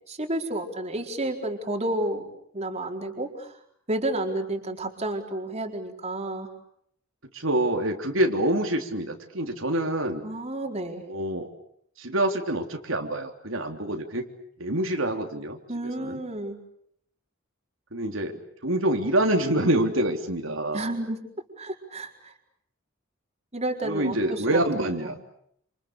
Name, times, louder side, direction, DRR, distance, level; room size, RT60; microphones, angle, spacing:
voice 1, 0.1-2.3 2.5-3.6 3.9-6.5 10.2-11.0 15.7-16.6 20.7-21.2 21.6-22.3 23.5-25.1, right 1 dB, 35° right, 2 dB, 4.4 m, -31 dB
voice 2, 7.3-10.2 11.1-11.5 12.0-14.3 14.6-16.2 17.9-18.4 18.6-20.8 23.8-25.2, right 1 dB, 80° right, 3 dB, 3.6 m, -26 dB
29.0 x 28.5 x 6.7 m, 0.69 s
head